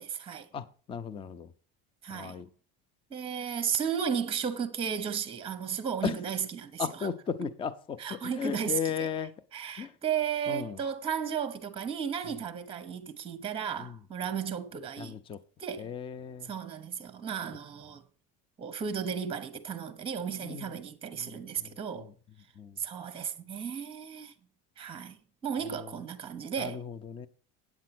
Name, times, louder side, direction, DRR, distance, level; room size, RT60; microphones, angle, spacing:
voice 1, 0.0-0.5 2.0-2.4 3.1-7.1 8.0-9.1 9.5-15.2 15.6-15.9 16.4-18.0 18.6-22.1 22.8-24.3 24.8-26.8, right 7 dB, 20° right, 1.0 m, -34 dB
voice 2, 0.5-1.5 2.1-2.5 6.0-6.2 6.8-9.3 9.8-9.9 10.5-10.8 12.2-12.3 13.8-14.0 15.0-15.4 15.8-16.5 20.4-20.7 21.2-22.1 22.6-22.8 25.6-25.9 26.6-27.3, left 7 dB, 20° left, 0.4 m, -36 dB
8.6 x 8.5 x 6.0 m
cardioid pair, 155°, 29 cm